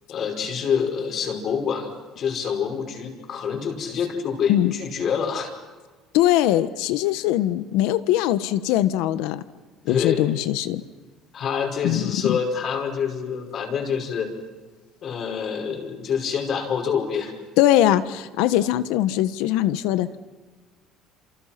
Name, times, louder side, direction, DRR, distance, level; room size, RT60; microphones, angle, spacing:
voice 1, 0.1-1.9 2.2-5.5 9.9-10.3 11.3-14.3 15.0-17.3, left 6 dB, 40° left, 2 dB, 5.3 m, -26 dB
voice 2, 6.1-9.4 9.8-10.8 11.8-12.4 17.6-20.1, left 13 dB, 85° left, 12 dB, 1.3 m, -21 dB
29.5 x 27.5 x 6.0 m, 1.3 s
cardioid pair, 145°, 0 cm